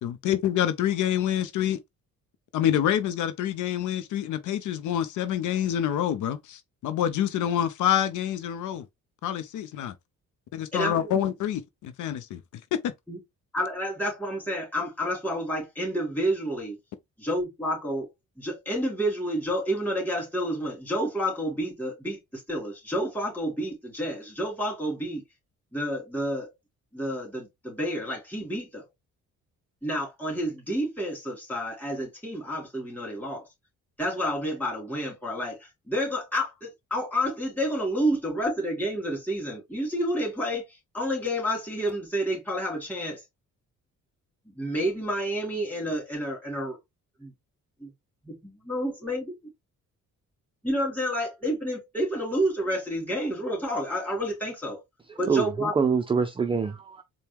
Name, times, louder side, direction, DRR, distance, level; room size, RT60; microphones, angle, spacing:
voice 1, 0.0-1.8 2.5-8.8 9.2-9.9 10.5-12.4 12.8-12.9, left 10 dB, 75° left, 0.6 m, -27 dB
voice 2, 10.7-11.2 13.1-13.2 13.5-16.8 17.2-18.1 18.4-25.2 25.7-26.5 26.9-28.9 29.8-33.5 34.0-43.2 44.5-46.8 47.2-47.3 47.8-47.9 48.2-49.3 50.6-54.8 55.2-55.7, equal, 5° left, 2.5 m, -29 dB
voice 3, 55.3-57.0, right 5 dB, 20° right, 0.4 m, -25 dB
4.4 x 2.2 x 3.5 m
cardioid pair, 110°, 30 cm